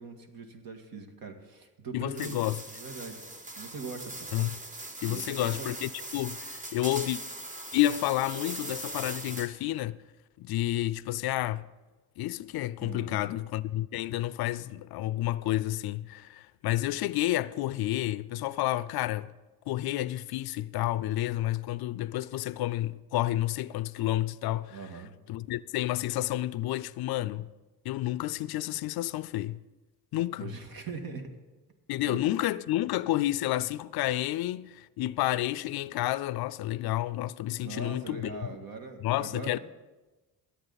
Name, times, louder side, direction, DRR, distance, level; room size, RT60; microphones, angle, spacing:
voice 1, 0.0-3.2 3.6-4.3 5.0-5.7 12.8-13.2 24.7-25.1 30.4-31.3 32.0-32.2 37.6-39.6, right 4 dB, 65° right, 1.9 m, -41 dB
voice 2, 1.9-2.6 4.3-4.5 5.0-7.2 7.7-10.0 10.4-11.7 12.2-19.3 19.7-24.8 25.3-27.5 27.8-29.6 30.1-30.5 31.9-38.4 39.0-39.6, left 15 dB, 70° left, 0.5 m, -30 dB
sound 1, 2.2-9.7, right 1 dB, 20° right, 1.1 m, -40 dB
21.0 x 8.4 x 4.1 m
cardioid pair, 105°, 38 cm